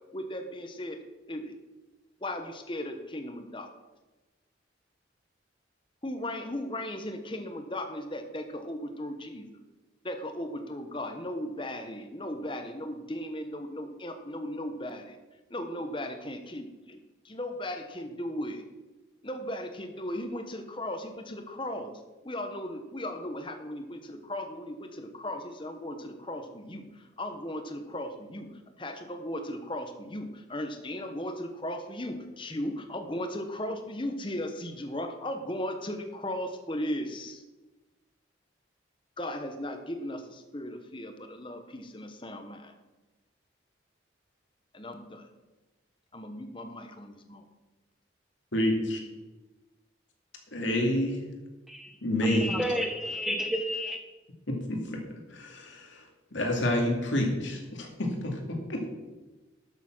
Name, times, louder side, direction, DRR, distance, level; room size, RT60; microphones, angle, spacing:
voice 1, 0.1-1.0 1.3-1.6 2.2-3.7 6.0-9.5 10.0-15.2 15.5-17.0 17.2-18.6 19.2-28.5 28.8-37.4 39.2-42.7 44.7-45.2 46.1-47.4, left 1 dB, 25° left, 6 dB, 1.1 m, -37 dB
voice 2, 48.5-49.0 50.5-51.2 52.0-52.6 54.5-55.0 55.3-56.0 56.3-58.9, left 1 dB, 80° left, 1 dB, 2.4 m, -28 dB
voice 3, 52.2-54.0, equal, ahead, 3 dB, 1.2 m, -31 dB
12.0 x 7.1 x 6.1 m, 1.2 s
head